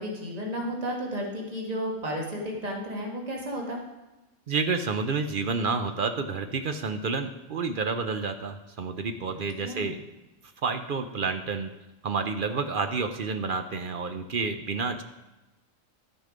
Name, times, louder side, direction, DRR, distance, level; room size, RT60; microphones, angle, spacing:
voice 1, 0.0-3.8 9.6-9.9, equal, 30° right, -1 dB, 1.7 m, -32 dB
voice 2, 4.5-10.0 10.6-11.7 12.0-15.0, right 4 dB, 55° right, 8 dB, 0.6 m, -29 dB
12.0 x 6.5 x 5.0 m, 1.1 s
omnidirectional pair, 1.4 m